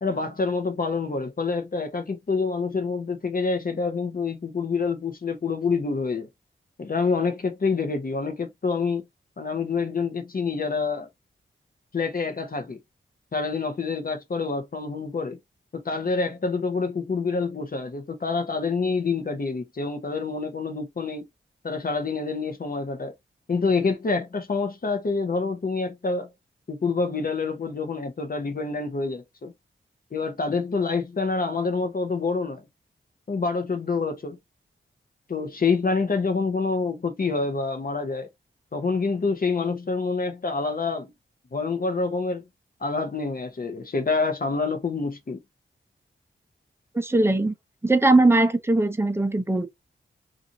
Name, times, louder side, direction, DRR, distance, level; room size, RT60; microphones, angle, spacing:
voice 1, 0.0-6.3 6.8-9.0 9.4-11.1 11.9-12.8 13.3-15.4 15.7-21.3 21.6-23.1 23.5-26.3 26.7-29.5 30.1-32.6 33.3-34.4 35.3-38.3 38.7-41.1 41.5-42.4 42.8-45.4, left 4 dB, 45° left, 0.8 m, -27 dB
voice 2, 46.9-47.5 47.8-49.7, right 2 dB, 10° right, 0.6 m, -20 dB
2.6 x 2.5 x 2.6 m
cardioid pair, 60°, 21 cm